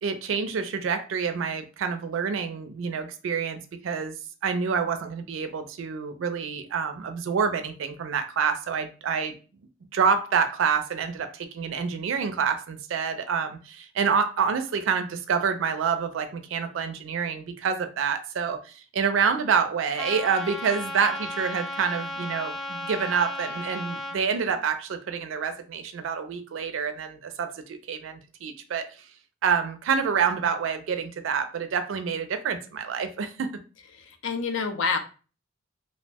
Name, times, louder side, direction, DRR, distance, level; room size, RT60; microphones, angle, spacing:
voice 1, 0.0-4.2 4.4-9.3 9.9-29.0 29.4-33.5, right 6 dB, 85° right, 0.4 m, -27 dB
Trumpet, 20.0-24.2, left 1 dB, ahead, 0.4 m, -35 dB
voice 2, 33.9-35.0, left 5 dB, 75° left, 0.5 m, -28 dB
2.6 x 2.0 x 3.3 m
head